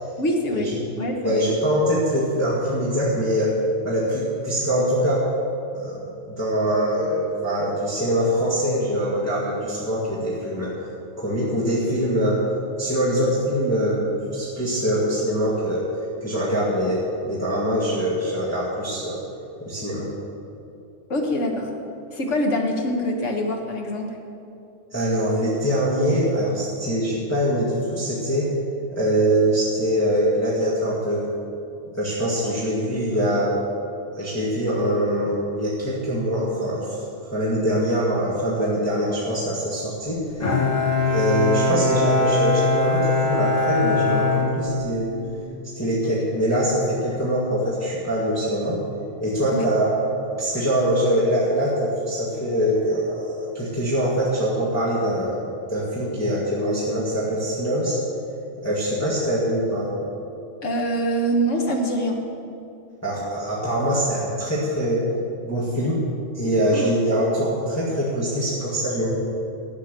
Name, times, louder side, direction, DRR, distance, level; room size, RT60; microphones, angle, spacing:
voice 1, 0.2-0.7 1.0-1.5 21.1-21.7 22.1-24.1 49.5-49.7 60.6-62.2 66.7-66.8, equal, 70° left, 1 dB, 1.8 m, -24 dB
voice 2, 1.2-3.6 3.8-5.3 5.7-10.7 11.2-12.4 12.8-15.9 16.2-19.2 19.6-20.1 24.9-28.5 28.9-31.2 31.9-33.5 34.1-37.0 37.3-40.5 41.1-45.1 45.8-48.8 49.2-49.9 50.4-58.0 58.6-59.9 63.0-65.1 65.4-66.1 66.3-69.1, equal, 10° left, -8 dB, 2.0 m, -23 dB
Bowed string instrument, 40.4-45.3, left 3 dB, 90° left, 2.3 m, -22 dB
12.0 x 8.3 x 6.8 m, 2.7 s
omnidirectional pair, 1.3 m